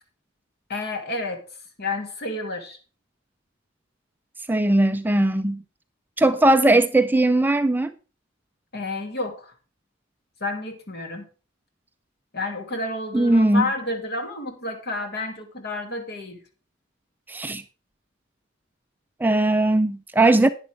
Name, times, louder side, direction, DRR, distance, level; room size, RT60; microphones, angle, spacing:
voice 1, 0.7-1.4 1.8-2.8 8.7-9.5 10.4-11.3 12.3-16.4, left 2 dB, 55° left, 2.5 m, -30 dB
voice 2, 4.5-5.6 6.2-7.9 13.1-13.7 17.3-17.6 19.2-20.5, right 2 dB, 10° right, 0.5 m, -19 dB
11.0 x 9.7 x 3.4 m
head